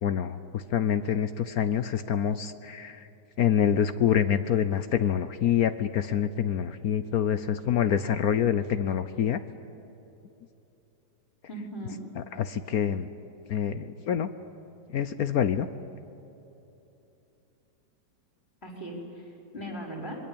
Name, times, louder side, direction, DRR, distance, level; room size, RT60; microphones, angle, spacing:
voice 1, 0.0-3.1 3.4-9.4 12.2-13.1 13.5-14.3 14.9-15.7, left 9 dB, 60° left, 11 dB, 1.1 m, -26 dB
voice 2, 11.5-12.0 18.6-20.2, right 1 dB, 35° left, -2 dB, 5.1 m, -38 dB
25.5 x 22.0 x 8.7 m, 2.9 s
omnidirectional pair, 2.0 m